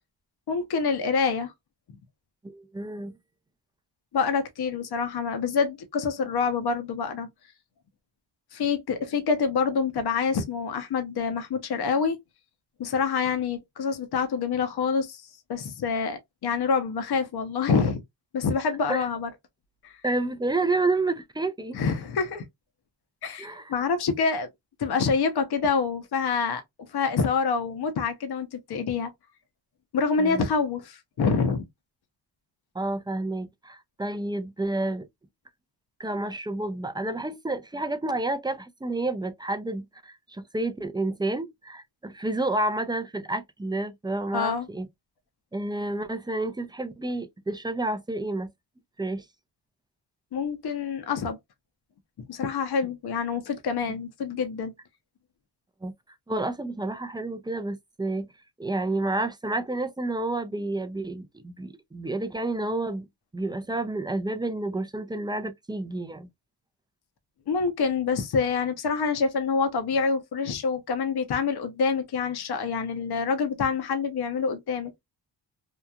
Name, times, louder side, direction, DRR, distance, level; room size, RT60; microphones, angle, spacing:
voice 1, 0.5-1.5 4.1-7.3 8.5-12.2 12.8-15.2 15.5-18.0 18.3-19.3 19.8-19.9 21.7-22.4 23.2-24.5 24.8-26.6 26.9-29.1 29.9-31.7 44.3-44.7 50.3-51.4 52.3-54.7 67.5-74.9, left 5 dB, 55° left, 0.8 m, -26 dB
voice 2, 2.4-3.1 18.9-19.1 20.0-21.8 23.4-23.7 30.2-30.5 32.7-35.1 36.0-44.9 45.5-48.5 49.0-49.2 55.8-55.9 56.3-58.3 58.6-63.1 63.3-66.3, right 2 dB, 10° right, 0.4 m, -30 dB
2.9 x 2.4 x 2.3 m
cardioid pair, 75°, 45 cm